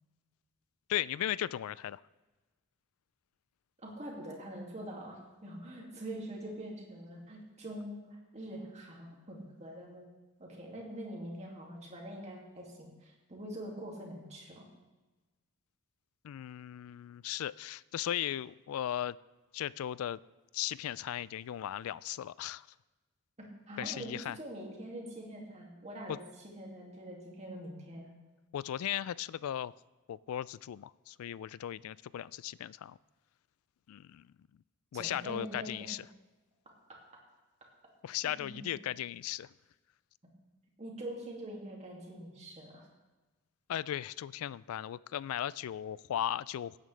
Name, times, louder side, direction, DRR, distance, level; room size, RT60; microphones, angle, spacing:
voice 1, 0.9-2.0 16.2-19.2 19.5-20.2 20.5-22.7 23.8-24.4 26.1-26.2 28.5-29.7 30.1-33.0 33.9-34.3 34.9-36.0 38.0-39.5 43.7-46.8, left 11 dB, 70° left, 19 dB, 0.3 m, -37 dB
voice 2, 3.8-10.1 10.4-14.6 23.4-28.1 34.9-35.9 36.9-37.0 38.2-38.6 40.8-42.9, right 1 dB, 30° right, -1 dB, 2.3 m, -44 dB
17.0 x 9.0 x 3.3 m, 1.2 s
head